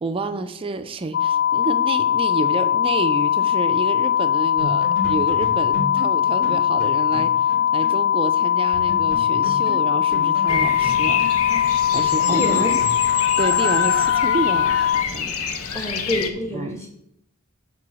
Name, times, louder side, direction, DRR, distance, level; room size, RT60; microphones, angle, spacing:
voice 1, 0.0-11.2 11.9-12.6 13.4-15.4 15.7-15.9 16.5-16.8, right 2 dB, 25° right, 9 dB, 0.4 m, -29 dB
sound 1, 1.1-15.0, left 9 dB, 55° left, 0.3 m, -20 dB
sound 2, 4.2-4.3 4.6-8.0 8.3-8.4 8.7-13.0, equal, 40° left, 2.8 m, -33 dB
Bird vocalization bird call bird song, 10.5-16.3, left 5 dB, 75° left, 0.8 m, -27 dB
voice 2, 12.3-12.7 15.7-16.9, left 1 dB, 10° left, 1 dB, 1.5 m, -26 dB
7.5 x 3.8 x 6.1 m, 0.76 s
head